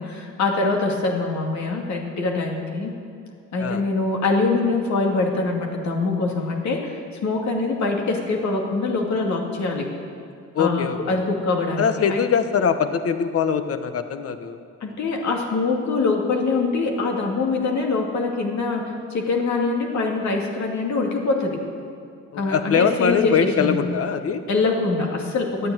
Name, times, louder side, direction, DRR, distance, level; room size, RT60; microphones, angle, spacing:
voice 1, 0.0-2.9 3.5-9.9 10.6-12.2 14.8-21.6 22.3-23.9 24.5-25.7, left 3 dB, 65° left, 1 dB, 2.4 m, -24 dB
voice 2, 10.5-11.0 11.8-14.6 22.3-24.4, left 7 dB, 50° left, 9 dB, 1.0 m, -22 dB
12.0 x 9.4 x 9.0 m, 2.4 s
cardioid pair, 90°, 30 cm